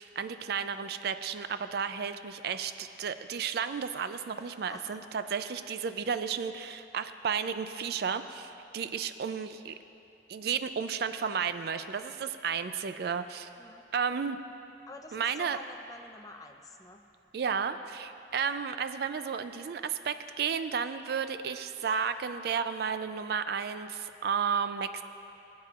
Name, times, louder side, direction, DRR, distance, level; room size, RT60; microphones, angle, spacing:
voice 1, 0.0-9.7 10.3-13.5 13.9-14.4 15.1-15.6 17.3-25.0, right 6 dB, 60° right, 11 dB, 0.4 m, -33 dB
voice 2, 4.4-5.0 13.6-13.8 14.9-17.0, left 2 dB, 20° left, 3 dB, 0.5 m, -48 dB
20.0 x 8.4 x 2.4 m, 2.8 s
head